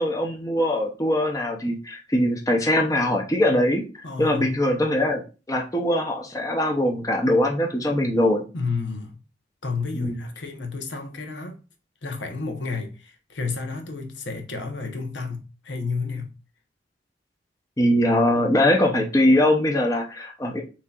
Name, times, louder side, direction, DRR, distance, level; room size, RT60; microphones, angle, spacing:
voice 1, 0.0-3.8 4.2-5.2 5.5-8.4 10.0-10.2 17.8-20.6, left 1 dB, 20° left, 0.7 m, -22 dB
voice 2, 4.0-4.5 8.5-9.2 9.6-11.5 12.0-16.3, left 4 dB, 80° left, 0.9 m, -31 dB
7.2 x 2.8 x 2.4 m
head